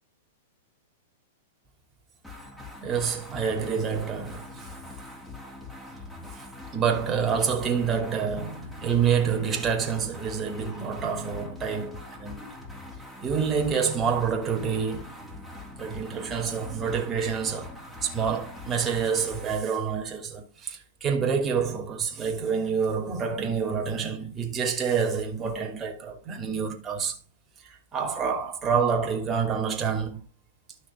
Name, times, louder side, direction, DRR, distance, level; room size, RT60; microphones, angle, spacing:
sound 1, 2.2-19.6, left 2 dB, 5° left, 2.9 m, -43 dB
voice 1, 2.8-4.7 6.3-6.4 6.7-12.5 13.2-15.1 15.8-17.8 18.0-27.2 27.9-30.3, right 6 dB, 20° right, 2.7 m, -27 dB
12.5 x 6.2 x 3.7 m
hypercardioid pair, 140°, 0 cm